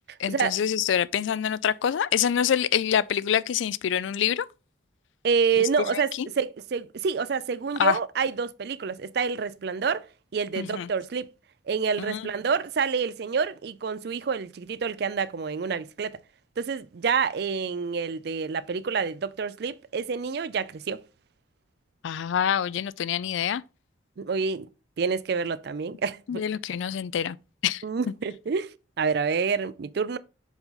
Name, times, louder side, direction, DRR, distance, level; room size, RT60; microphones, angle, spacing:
voice 1, 0.2-4.5 5.6-6.3 7.8-8.0 10.6-10.9 12.1-12.2 22.0-23.6 26.3-27.4 27.6-27.8, left 9 dB, 70° left, 0.3 m, -26 dB
voice 2, 5.2-10.0 10.3-11.3 11.7-16.2 16.6-21.0 24.2-24.7 25.0-26.4 27.8-30.2, right 5 dB, 55° right, 0.4 m, -28 dB
7.0 x 4.0 x 3.9 m
head